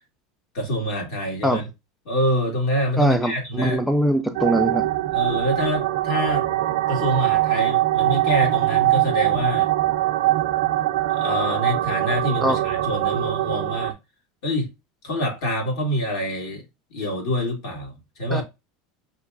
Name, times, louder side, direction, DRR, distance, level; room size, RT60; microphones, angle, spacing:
voice 1, 0.5-1.6 2.1-3.8 5.1-6.4 6.9-9.7 11.1-13.9 14.4-14.7 15.0-16.6 16.9-17.9 18.2-18.4, equal, 65° left, 2.3 m, -26 dB
voice 2, 3.0-4.8 12.4-12.6 18.3-18.4, equal, ahead, 0.4 m, -22 dB
sound 1, 4.3-13.9, right 15 dB, 70° right, 0.5 m, -22 dB
5.5 x 2.9 x 2.5 m
supercardioid pair, 150°, 3 cm